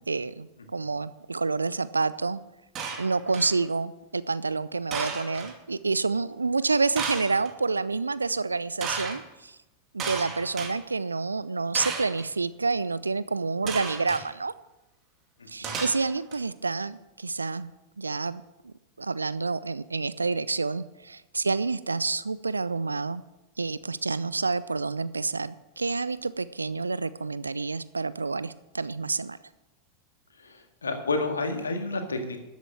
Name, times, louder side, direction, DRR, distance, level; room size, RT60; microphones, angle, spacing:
voice 1, 0.1-2.4 3.0-9.6 9.9-14.5 15.5-17.7 18.0-23.2 23.6-29.4, right 4 dB, 80° right, 16 dB, 0.4 m, -28 dB
sound 1, 2.8-3.6 4.9-5.5 7.0-7.5 8.8-9.2 10.0-10.7 11.7-12.2 13.7-14.2 15.6-16.4, right 5 dB, 30° right, 2.6 m, -33 dB
voice 2, 15.4-15.8 30.4-32.4, left 3 dB, 75° left, 5 dB, 1.9 m, -30 dB
13.0 x 8.3 x 7.8 m, 0.97 s
figure-of-eight pair, 90°, 0 cm